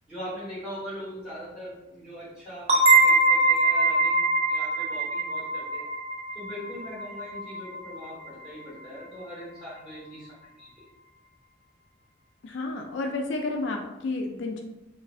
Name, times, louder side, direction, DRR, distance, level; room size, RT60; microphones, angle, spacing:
voice 1, 0.1-5.9 6.3-10.7, equal, 5° right, -9 dB, 1.3 m, -41 dB
sound 1, 2.7-8.1, right 2 dB, 30° right, 0.3 m, -23 dB
voice 2, 12.4-14.6, left 2 dB, 60° left, 2 dB, 0.3 m, -31 dB
2.5 x 2.4 x 3.2 m, 0.95 s
head